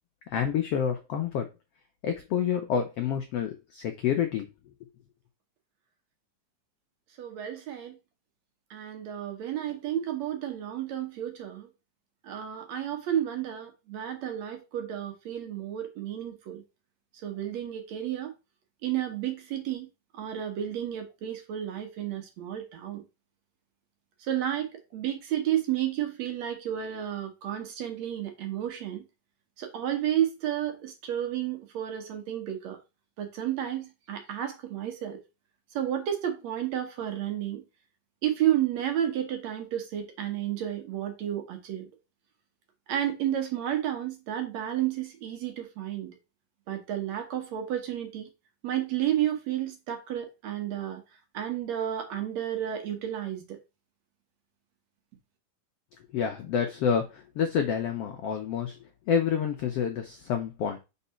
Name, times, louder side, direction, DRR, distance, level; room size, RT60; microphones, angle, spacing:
voice 1, 0.3-1.5 2.0-4.4 56.1-58.8 59.1-60.8, left 7 dB, 90° left, 1.3 m, -28 dB
voice 2, 7.2-7.9 8.7-11.7 12.2-16.6 17.2-18.3 18.8-19.9 20.1-23.0 24.3-29.0 29.6-32.8 33.2-35.2 35.7-37.6 38.2-41.9 42.9-46.2 46.7-48.3 48.6-51.0 51.3-53.6, right 11 dB, 65° right, 2.1 m, -31 dB
4.7 x 4.1 x 5.6 m
omnidirectional pair, 3.8 m